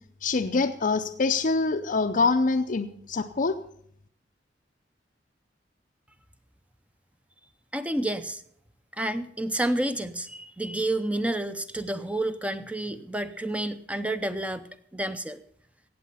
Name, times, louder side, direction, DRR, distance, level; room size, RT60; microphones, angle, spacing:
voice 1, 0.2-3.6, left 3 dB, 50° left, 4 dB, 0.6 m, -25 dB
voice 2, 7.7-8.4 9.0-14.7 14.9-15.4, right 1 dB, 10° right, 11 dB, 0.6 m, -29 dB
17.5 x 7.7 x 5.6 m, 0.64 s
head